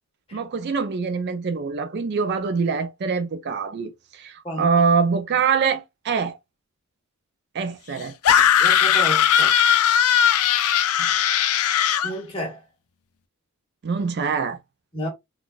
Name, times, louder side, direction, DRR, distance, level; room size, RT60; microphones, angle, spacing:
voice 1, 0.3-6.4 7.5-8.2 11.0-11.1 13.8-14.6, right 5 dB, 50° right, 0.4 m, -24 dB
sound 1, 8.2-12.1, left 9 dB, 80° left, 0.4 m, -18 dB
voice 2, 8.6-9.6 12.0-12.6 14.9-15.1, equal, 25° left, 1.4 m, -31 dB
3.8 x 2.3 x 2.3 m
head